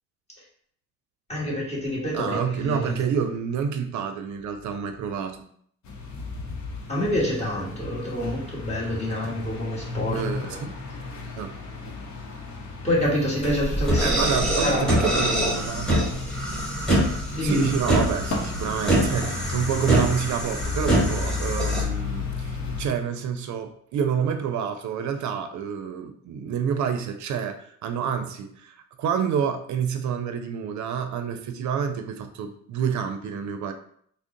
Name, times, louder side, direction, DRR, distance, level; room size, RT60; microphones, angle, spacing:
voice 1, 1.3-3.1 6.9-10.6 12.8-15.4 15.7-15.8 17.3-17.7, left 1 dB, 20° left, -5 dB, 1.4 m, -27 dB
voice 2, 2.1-5.5 10.1-10.8 11.4-11.5 14.0-16.1 17.4-33.7, right 7 dB, 70° right, 7 dB, 0.5 m, -28 dB
sound 1, 5.8-22.9, left 4 dB, 65° left, 0.8 m, -34 dB
sound 2, 13.4-21.8, right 1 dB, ahead, 1.3 m, -25 dB
3.6 x 2.0 x 3.7 m, 0.64 s
cardioid pair, 90°, 30 cm